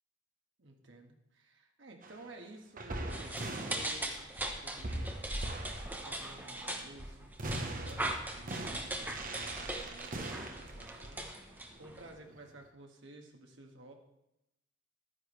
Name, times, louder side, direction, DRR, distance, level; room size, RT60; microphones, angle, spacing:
voice 1, 0.6-5.3 6.0-7.3 7.5-10.5 10.7-13.9, right 2 dB, 70° right, 2 dB, 1.5 m, -53 dB
sound 1, 2.0-2.2 2.8-4.5 4.8-6.9 7.4-12.6, right 1 dB, 45° right, 1.0 m, -42 dB
sound 2, 3.1-12.1, right 1 dB, 10° right, 0.9 m, -40 dB
11.5 x 9.6 x 3.2 m, 0.88 s
head